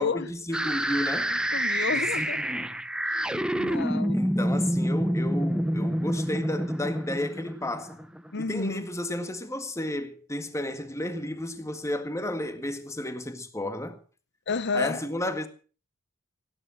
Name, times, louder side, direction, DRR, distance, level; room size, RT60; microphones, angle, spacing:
voice 1, 0.0-1.4 1.9-2.8 4.1-8.0 8.4-14.0 14.7-15.5, left 1 dB, 15° left, 1.7 m, -32 dB
sound 1, 0.5-8.4, equal, 5° right, 0.7 m, -28 dB
voice 2, 1.3-2.4 3.1-4.1 8.3-8.8 14.5-15.0, left 4 dB, 55° left, 0.9 m, -31 dB
17.5 x 10.0 x 6.3 m
head